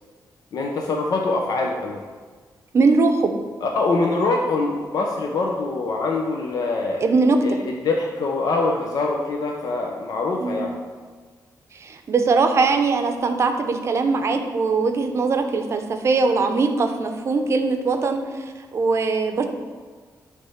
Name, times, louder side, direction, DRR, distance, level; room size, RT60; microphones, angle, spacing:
voice 1, 0.5-2.0 3.6-7.0 7.4-10.7, left 3 dB, 65° left, 0 dB, 0.7 m, -24 dB
voice 2, 2.7-3.3 7.0-7.6 10.4-10.6 11.7-18.4 18.7-19.5, right 4 dB, 40° right, 6 dB, 0.7 m, -21 dB
9.4 x 3.3 x 5.7 m, 1.5 s
wide cardioid pair, 175°, 7 cm